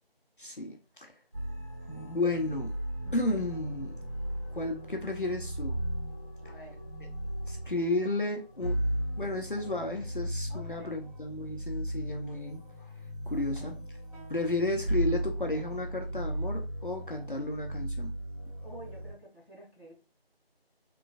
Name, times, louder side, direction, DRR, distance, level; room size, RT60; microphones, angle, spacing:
voice 1, 0.4-1.1 1.9-2.7 3.1-4.0 4.5-5.8 7.5-8.8 9.2-12.6 13.3-13.8 14.3-18.1, left 2 dB, 55° left, 0.6 m, -33 dB
sound 1, 1.3-19.1, right 1 dB, 35° right, 1.5 m, -36 dB
voice 2, 6.4-6.8 10.5-11.0 13.3-13.8 18.6-19.9, right 1 dB, ahead, 1.2 m, -50 dB
3.7 x 3.1 x 2.3 m
figure-of-eight pair, 175°, 31 cm